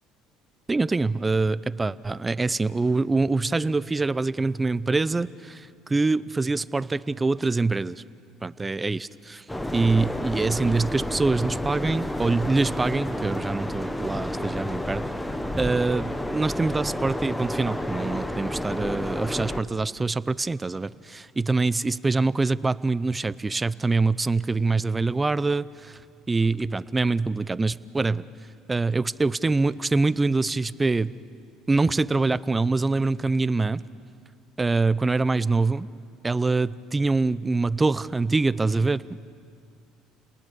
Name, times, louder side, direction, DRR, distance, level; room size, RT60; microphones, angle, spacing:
voice 1, 0.7-8.0 8.4-9.4 9.7-15.0 15.6-26.0 26.3-28.2 28.7-31.1 31.7-33.8 34.6-35.9 36.2-39.2, right 3 dB, 15° right, 17 dB, 0.5 m, -24 dB
sound 1, 9.5-19.6, left 1 dB, 5° left, 1.1 m, -30 dB
30.0 x 19.5 x 6.9 m, 2.2 s
cardioid pair, 110°, 0 cm